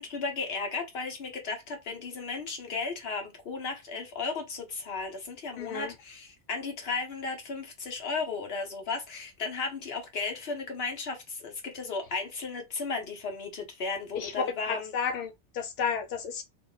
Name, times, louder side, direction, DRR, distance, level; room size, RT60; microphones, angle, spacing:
voice 1, 0.0-14.9, left 4 dB, 60° left, 1.3 m, -35 dB
voice 2, 5.6-5.9 14.1-14.3 14.7-16.4, left 6 dB, 90° left, 0.9 m, -32 dB
2.9 x 2.3 x 3.8 m
omnidirectional pair, 1.2 m